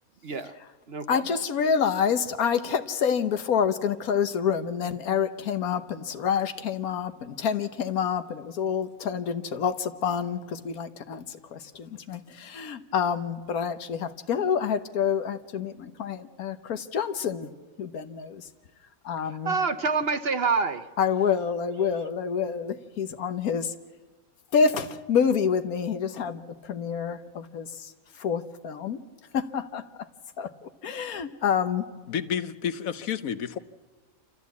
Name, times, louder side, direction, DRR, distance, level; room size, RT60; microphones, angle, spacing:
voice 1, 0.2-0.6 0.9-1.4 19.2-20.9 21.8-22.1, right 4 dB, 50° right, 10 dB, 0.9 m, -28 dB
voice 2, 1.1-11.2 11.5-17.5 17.8-18.4 19.0-19.5 21.0-23.7 24.5-26.4 26.7-27.7 28.2-29.0 29.3-29.8 30.4-30.5 30.8-31.9, left 7 dB, 90° left, 10 dB, 1.5 m, -27 dB
voice 3, 32.1-33.6, left 8 dB, 75° left, 12 dB, 1.3 m, -30 dB
28.0 x 14.0 x 8.3 m, 1.4 s
omnidirectional pair, 1.5 m